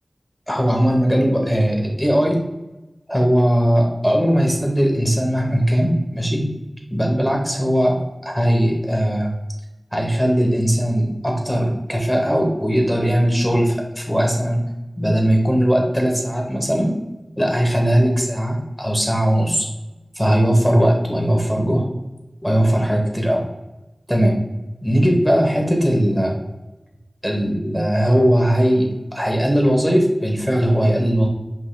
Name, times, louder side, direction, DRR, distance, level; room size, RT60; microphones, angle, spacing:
voice 1, 0.5-2.4 3.1-6.4 6.9-8.0 8.2-9.3 9.9-14.6 15.0-16.9 17.4-19.7 20.2-21.9 22.4-23.4 24.1-24.3 24.8-26.3 27.2-31.3, equal, 10° left, 0 dB, 1.0 m, -19 dB
5.4 x 2.4 x 3.2 m, 1.0 s
wide cardioid pair, 60°, 0 cm